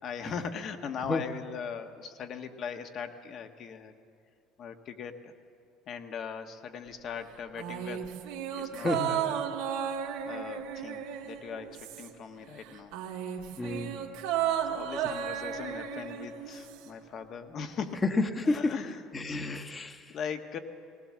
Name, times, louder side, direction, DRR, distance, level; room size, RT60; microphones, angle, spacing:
voice 1, 0.0-3.9 4.6-5.3 5.9-8.1 8.6-9.5 10.2-12.9 14.7-18.0 18.4-19.6 20.1-20.6, left 6 dB, 50° left, 6 dB, 1.4 m, -40 dB
sound 1, 7.6-12.3 12.6-16.9 17.2-17.3, right 9 dB, 85° right, 1.7 m, -34 dB
voice 2, 8.8-9.1 13.6-14.0 18.0-18.7 19.1-20.0, left 2 dB, 25° left, 5 dB, 1.2 m, -29 dB
19.0 x 19.0 x 7.4 m, 2.3 s
supercardioid pair, 100°, 0 cm